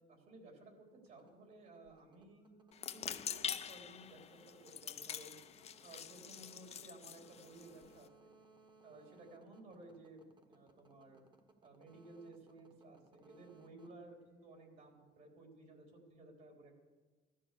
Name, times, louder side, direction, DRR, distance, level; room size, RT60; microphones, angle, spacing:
voice 1, 0.0-5.3 5.8-8.3 8.8-11.2 11.6-16.7, right 2 dB, 60° right, 2 dB, 3.7 m, -57 dB
sound 1, 1.1-14.9, right 3 dB, 25° right, 1.4 m, -66 dB
sound 2, 2.7-8.1, left 8 dB, 40° left, 0.6 m, -45 dB
14.5 x 13.0 x 6.8 m, 1.3 s
cardioid pair, 110°, 17 cm